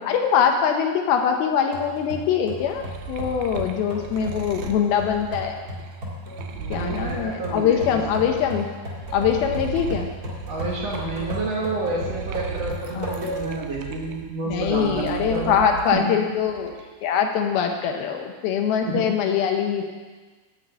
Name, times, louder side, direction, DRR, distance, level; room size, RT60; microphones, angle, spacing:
voice 1, 0.0-5.6 6.7-8.7 9.1-10.1 12.9-13.5 14.5-16.7 17.0-19.9, left 7 dB, 80° left, 4 dB, 2.6 m, -23 dB
sound 1, 1.7-13.6 14.1-14.2 15.0-15.5, equal, 35° right, 1.7 m, -35 dB
sound 2, 2.4-8.6 9.0-16.0 16.4-17.0, right 6 dB, 80° right, 2.2 m, -37 dB
voice 2, 6.5-8.0 10.5-15.6 15.9-16.4 18.8-19.2, right 2 dB, 55° right, -4 dB, 2.2 m, -29 dB
9.9 x 5.9 x 8.5 m, 1.3 s
omnidirectional pair, 4.5 m